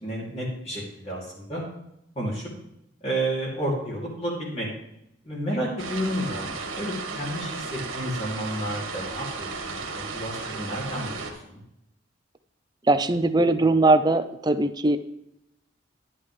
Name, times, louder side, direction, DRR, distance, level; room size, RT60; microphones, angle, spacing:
voice 1, 0.0-1.6 2.1-2.5 3.0-4.7 5.2-11.6, right 1 dB, 30° left, -5 dB, 3.1 m, -31 dB
sound 1, 5.8-11.3, right 4 dB, 90° right, 1.8 m, -34 dB
voice 2, 12.9-15.0, right 2 dB, 20° right, 10 dB, 0.5 m, -20 dB
11.0 x 10.0 x 3.3 m, 0.83 s
head